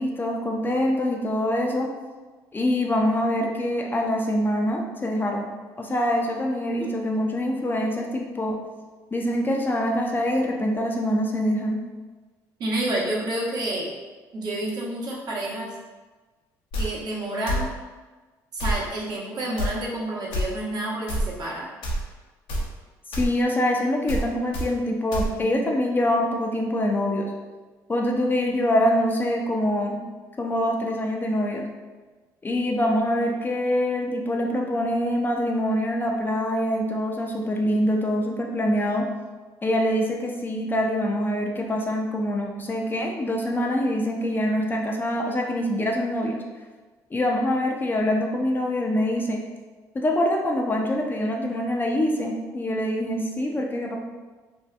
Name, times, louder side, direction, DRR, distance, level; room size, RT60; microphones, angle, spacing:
voice 1, 0.0-1.9 2.5-5.5 5.8-8.6 9.1-11.8 23.1-27.3 27.9-30.0 30.4-31.7 32.4-39.1 39.6-46.4 47.1-49.4 49.9-54.0, left 1 dB, 25° left, 1 dB, 0.4 m, -24 dB
voice 2, 12.6-13.9 14.3-15.7 16.8-17.7 18.5-21.7, right 1 dB, 55° right, -4 dB, 0.8 m, -29 dB
sound 1, 16.7-16.9 17.5-17.7 18.6-18.8 19.6-19.7 20.3-20.4 21.1-21.3 21.8-22.0 22.5-22.7 23.1-23.3 24.1-24.2 24.5-24.7 25.1-25.3, equal, 75° left, 0.6 m, -26 dB
2.7 x 2.3 x 2.3 m, 1.3 s
supercardioid pair, 70°, 8 cm